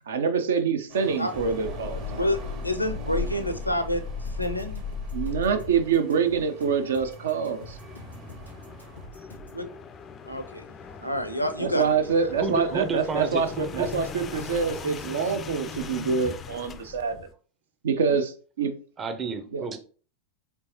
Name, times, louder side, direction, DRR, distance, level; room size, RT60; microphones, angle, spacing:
voice 1, 0.1-2.0 5.1-7.8 11.6-17.3 17.8-18.7 19.5-19.7, right 6 dB, 65° right, 0.5 m, -26 dB
sound 1, 0.9-9.1, right 3 dB, 40° right, 1.3 m, -44 dB
sound 2, 1.3-6.0 7.4-17.3, left 5 dB, 25° left, 0.3 m, -38 dB
voice 2, 2.6-4.0 4.4-4.8 9.5-9.7 10.3-10.6 11.0-11.9, left 1 dB, 90° left, 0.4 m, -28 dB
sound 3, 4.2-9.6, left 1 dB, 90° right, 1.3 m, -47 dB
voice 3, 12.4-13.9 19.0-19.8, right 4 dB, 20° right, 0.6 m, -31 dB
4.5 x 3.3 x 2.8 m
figure-of-eight pair, 90°, 0 cm